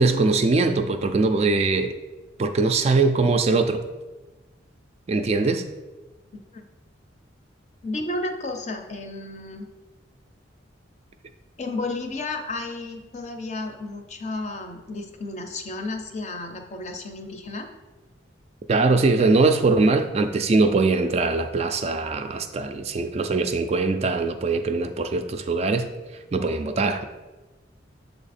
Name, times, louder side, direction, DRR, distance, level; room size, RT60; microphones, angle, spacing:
voice 1, 0.0-1.9 2.4-3.8 5.1-5.7 18.7-25.9 26.3-27.0, right 3 dB, 35° right, 7 dB, 0.3 m, -21 dB
voice 2, 7.8-9.7 11.6-17.7, left 2 dB, 35° left, 5 dB, 0.6 m, -32 dB
7.0 x 3.4 x 4.2 m, 1.2 s
head